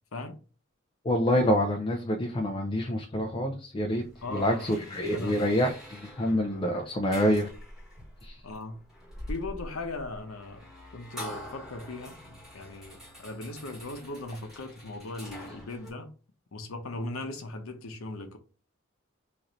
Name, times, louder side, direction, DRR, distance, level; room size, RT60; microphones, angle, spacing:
voice 1, 1.0-4.1 4.3-7.5 8.2-8.4, equal, 25° left, 0.4 m, -27 dB
sound 1, 3.9-15.9, equal, ahead, 1.2 m, -45 dB
voice 2, 4.2-4.7 5.1-5.4 8.4-8.9 9.3-10.7 10.9-16.1 16.5-18.4, left 2 dB, 90° left, 0.7 m, -38 dB
3.1 x 2.5 x 3.9 m
head